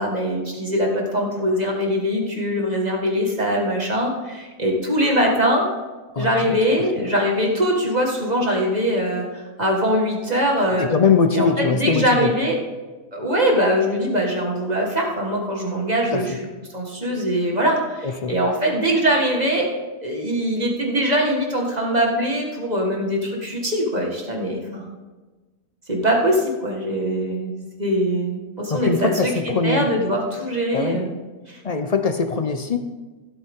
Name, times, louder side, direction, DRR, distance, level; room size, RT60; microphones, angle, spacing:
voice 1, 0.0-5.7 6.2-10.9 11.3-12.6 13.1-16.4 16.7-19.7 20.0-24.9 25.9-31.1 31.5-31.6, equal, 25° right, 0 dB, 1.9 m, -22 dB
voice 2, 6.1-7.0 10.8-12.3 16.1-16.4 18.0-18.4 28.7-29.9 30.7-31.0 31.6-32.8, left 5 dB, 50° left, 7 dB, 0.4 m, -22 dB
16.0 x 8.4 x 3.7 m, 1.3 s
omnidirectional pair, 1.6 m